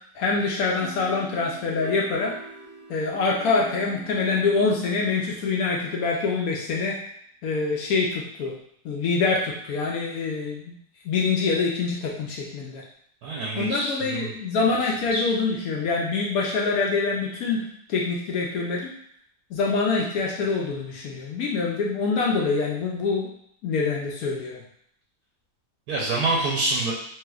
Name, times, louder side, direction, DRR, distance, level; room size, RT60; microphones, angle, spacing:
voice 1, 0.2-2.3 2.9-7.0 7.4-8.5 8.8-10.7 11.0-12.8 13.6-17.6 17.9-18.9 19.5-23.3 23.6-24.6, left 4 dB, 70° left, -2 dB, 0.9 m, -25 dB
sound 1, 0.8-5.5, right 2 dB, 10° right, 0.3 m, -44 dB
voice 2, 13.2-14.3 15.1-15.2 25.9-26.9, right 2 dB, 70° right, -3 dB, 1.0 m, -26 dB
3.2 x 2.9 x 2.3 m, 0.67 s
omnidirectional pair, 1.9 m